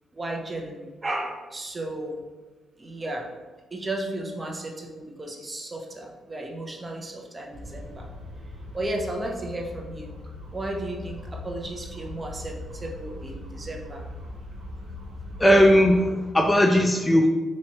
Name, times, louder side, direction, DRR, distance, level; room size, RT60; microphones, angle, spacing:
voice 1, 0.1-2.2 2.8-3.3 3.7-8.1 8.7-10.1 10.5-14.0, right 1 dB, 30° right, 1 dB, 0.8 m, -34 dB
sound 1, 7.5-16.1, left 2 dB, 75° right, 1.0 m, -40 dB
voice 2, 15.4-17.3, equal, 15° left, 4 dB, 0.3 m, -18 dB
4.2 x 3.0 x 2.9 m, 1.3 s
supercardioid pair, 65°, 0 cm